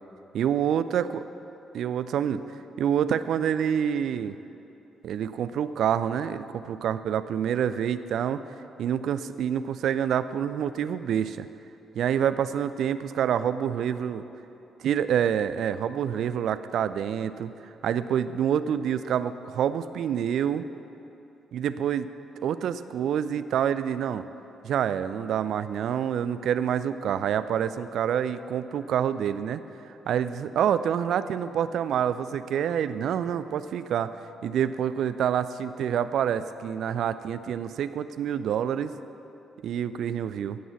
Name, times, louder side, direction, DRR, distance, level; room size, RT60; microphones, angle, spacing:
voice 1, 0.3-1.1 1.7-2.4 2.8-4.4 5.0-8.4 8.8-11.5 12.0-14.2 14.8-17.5 17.8-20.7 21.5-22.1 22.4-24.2 24.6-29.6 30.1-34.1 34.4-38.9 39.6-40.6, right 9 dB, 60° right, 13 dB, 0.4 m, -27 dB
16.0 x 6.2 x 7.1 m, 2.9 s
figure-of-eight pair, 40°, 0 cm